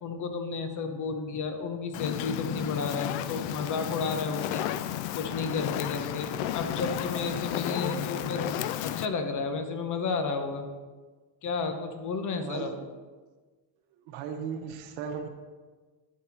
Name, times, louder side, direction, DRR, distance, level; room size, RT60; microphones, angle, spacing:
voice 1, 0.0-4.7 5.1-6.3 6.5-8.5 8.8-10.7 11.4-12.7, left 4 dB, 40° left, 6 dB, 1.0 m, -32 dB
Fire, 1.9-9.1, left 11 dB, 75° left, 0.5 m, -32 dB
voice 2, 12.4-12.8 14.1-15.3, right 6 dB, 80° right, 5 dB, 1.0 m, -36 dB
10.5 x 4.1 x 4.3 m, 1.4 s
cardioid pair, 105°, 46 cm